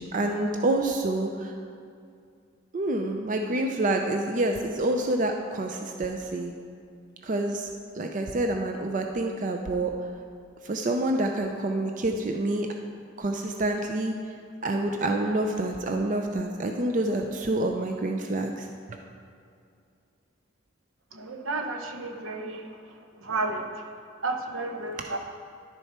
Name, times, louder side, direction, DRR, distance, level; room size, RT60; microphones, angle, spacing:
voice 1, 0.0-1.5 2.7-6.5 7.2-7.7 7.9-9.9 10.6-12.7 13.2-14.1 14.6-18.7 25.0-25.1, right 2 dB, 40° right, 3 dB, 0.4 m, -27 dB
voice 2, 21.1-22.7 23.2-23.6 24.2-25.2, right 3 dB, 75° right, 4 dB, 0.8 m, -31 dB
11.0 x 6.6 x 4.3 m, 2.4 s
head